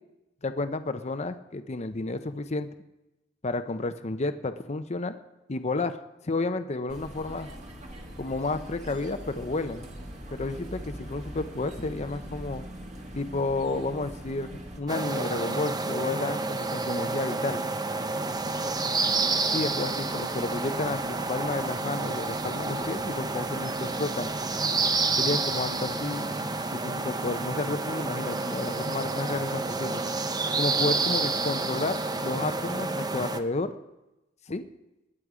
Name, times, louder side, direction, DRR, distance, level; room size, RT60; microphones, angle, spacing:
voice 1, 0.4-2.7 3.4-5.2 5.5-6.0 6.2-7.5 8.2-9.9 10.3-12.7 13.1-17.6 19.5-24.3 25.2-26.3 26.7-30.0 30.6-32.0 32.2-33.7 34.5-34.6, left 3 dB, 35° left, 9 dB, 0.7 m, -31 dB
sound 1, 6.9-14.8, equal, 40° right, 2.2 m, -41 dB
sound 2, 14.9-33.4, right 3 dB, 20° right, 0.7 m, -29 dB
sound 3, 18.3-26.2, right 1 dB, 60° right, 2.1 m, -51 dB
20.5 x 9.8 x 4.9 m, 0.96 s
head